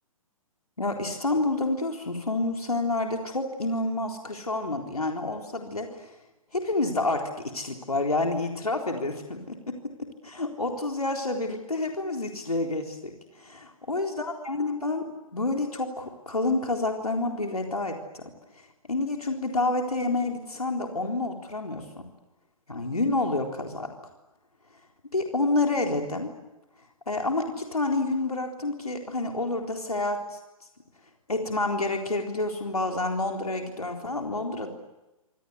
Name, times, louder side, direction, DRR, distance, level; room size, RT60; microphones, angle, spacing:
voice 1, 0.8-6.1 6.5-18.2 18.6-22.0 22.7-23.9 25.1-26.3 27.1-30.4 31.3-34.7, left 2 dB, 90° left, 2 dB, 3.9 m, -29 dB
27.5 x 25.0 x 8.2 m, 1.0 s
figure-of-eight pair, 125°, 18 cm